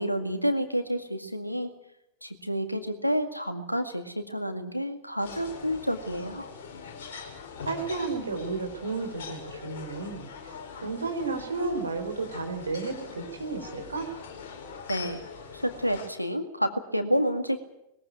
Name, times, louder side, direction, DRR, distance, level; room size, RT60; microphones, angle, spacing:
voice 1, 0.0-1.7 2.2-6.5 14.9-15.2 15.5-17.6, equal, 90° left, 7 dB, 2.0 m, -29 dB
sound 1, 5.2-16.1, left 5 dB, 55° left, 5.2 m, -42 dB
voice 2, 7.6-14.1, right 3 dB, 75° right, 5 dB, 3.6 m, -33 dB
21.5 x 15.0 x 9.3 m, 0.84 s
figure-of-eight pair, 90°, 0 cm